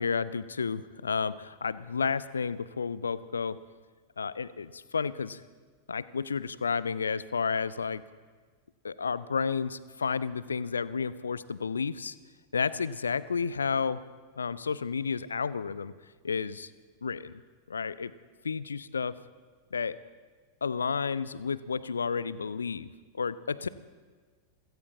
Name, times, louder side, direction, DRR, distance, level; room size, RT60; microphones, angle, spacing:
voice 1, 0.0-3.6 4.2-5.4 5.9-8.0 8.8-12.2 12.5-14.0 14.4-15.9 16.2-16.7 17.0-17.4 17.7-18.1 18.4-19.2 19.7-20.0 20.6-23.7, left 5 dB, 75° left, 18 dB, 0.5 m, -31 dB
27.5 x 17.0 x 2.9 m, 1.5 s
figure-of-eight pair, 90°, 0 cm